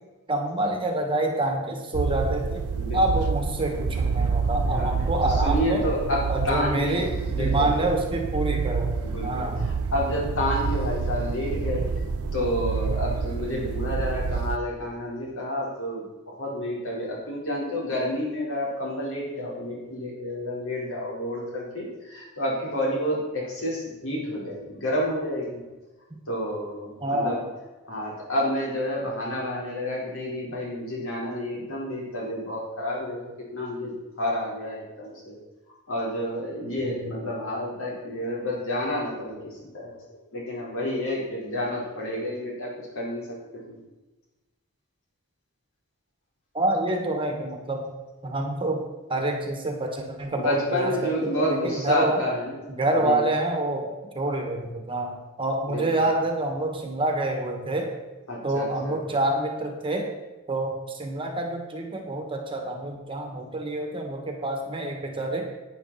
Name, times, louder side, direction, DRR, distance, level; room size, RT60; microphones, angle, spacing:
voice 1, 0.3-5.9 6.3-8.9 9.2-9.6 27.0-27.4 36.8-37.1 46.5-47.8 48.2-48.8 49.1-52.2 52.7-53.9 54.1-57.9 58.4-60.1 60.5-65.5, right 1 dB, 25° right, 3 dB, 1.6 m, -27 dB
sound 1, 1.9-14.6, right 5 dB, 75° right, 0.6 m, -28 dB
voice 2, 2.7-3.2 4.7-4.9 5.2-7.0 7.3-7.8 9.0-11.8 12.3-25.6 26.3-27.4 27.8-35.4 35.9-39.9 40.3-43.4 43.7-43.8 50.4-52.6 53.0-53.2 55.7-56.1 58.3-59.0, left 1 dB, 65° left, -3 dB, 4.4 m, -29 dB
11.5 x 9.2 x 4.3 m, 1.1 s
head